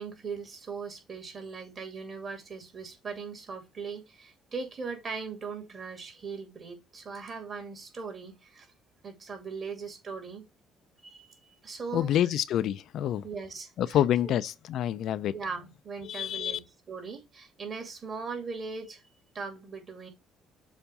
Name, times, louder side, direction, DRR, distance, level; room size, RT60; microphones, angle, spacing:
voice 1, 0.0-8.7 9.0-10.4 11.0-12.1 13.2-14.3 15.3-19.0 19.3-20.1, right 5 dB, 40° right, 2.5 m, -39 dB
voice 2, 11.9-13.2 13.8-15.3 16.0-16.6, left 11 dB, 65° left, 0.5 m, -27 dB
7.1 x 2.7 x 5.3 m
supercardioid pair, 85°, 0 cm